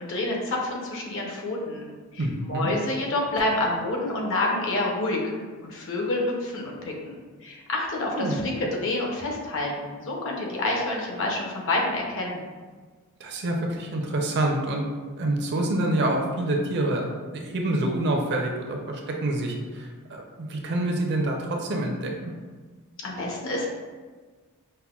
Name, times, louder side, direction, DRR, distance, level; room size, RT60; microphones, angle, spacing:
voice 1, 0.0-1.9 2.1-5.2 5.6-12.4 23.0-23.7, left 2 dB, 60° left, -1 dB, 0.7 m, -28 dB
voice 2, 2.2-2.7 8.0-8.4 13.2-14.8 15.2-17.0 17.3-22.3, right 1 dB, 50° right, 1 dB, 0.5 m, -27 dB
5.4 x 2.1 x 2.3 m, 1.4 s
head